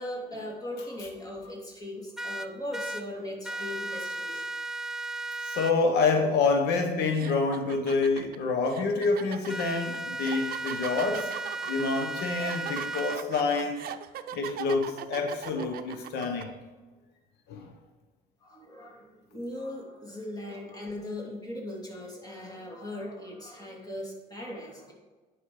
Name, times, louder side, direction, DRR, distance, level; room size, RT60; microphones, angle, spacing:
voice 1, 0.0-4.4 18.4-24.9, left 1 dB, 20° left, -2 dB, 2.8 m, -39 dB
sound 1, 2.2-3.0 3.4-5.7 9.5-13.2, right 2 dB, ahead, 0.3 m, -35 dB
voice 2, 5.4-11.3 11.7-13.8 14.3-16.5 17.5-17.7, left 4 dB, 80° left, 4 dB, 1.1 m, -27 dB
sound 2, 6.4-6.6 7.1-16.4, right 11 dB, 65° right, 0.6 m, -40 dB
10.0 x 5.4 x 4.8 m, 1.3 s
cardioid pair, 110°, 17 cm